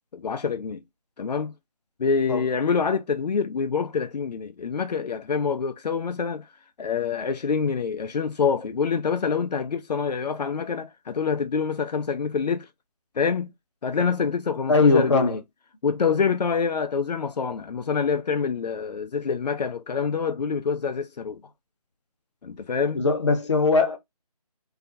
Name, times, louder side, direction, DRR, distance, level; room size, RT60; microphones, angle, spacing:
voice 1, 0.1-0.8 1.2-1.5 2.0-6.5 6.8-12.7 13.2-13.5 13.8-15.4 15.8-21.4 22.4-23.0, left 5 dB, 85° left, 0.4 m, -26 dB
voice 2, 14.7-15.4 22.9-24.0, left 3 dB, 45° left, 0.7 m, -20 dB
2.4 x 2.0 x 2.5 m
figure-of-eight pair, 170°, 20 cm